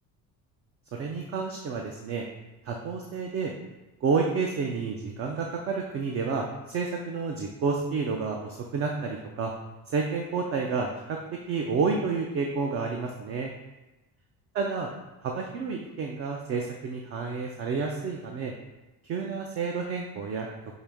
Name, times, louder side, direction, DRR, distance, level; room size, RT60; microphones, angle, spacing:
voice 1, 0.9-2.3 2.6-3.5 4.0-9.5 9.9-11.2 11.5-13.5 14.5-14.9 15.2-18.5 19.1-20.5, right 5 dB, 40° right, 1 dB, 0.4 m, -30 dB
5.5 x 2.7 x 3.5 m, 1.1 s
cardioid pair, 145°, 38 cm